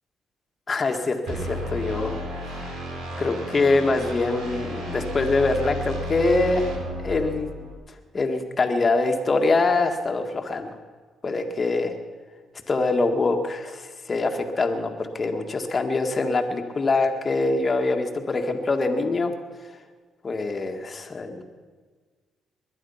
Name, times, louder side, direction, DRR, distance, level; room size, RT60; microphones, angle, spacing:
voice 1, 0.7-2.2 3.2-6.7 7.0-7.5 8.1-10.8 11.2-12.0 12.7-19.3 20.2-21.4, left 3 dB, 35° left, 5 dB, 1.8 m, -24 dB
sound 1, 1.3-7.7, equal, 90° right, 2.9 m, -33 dB
21.0 x 11.0 x 5.7 m, 1.5 s
cardioid pair, 90°, 0 cm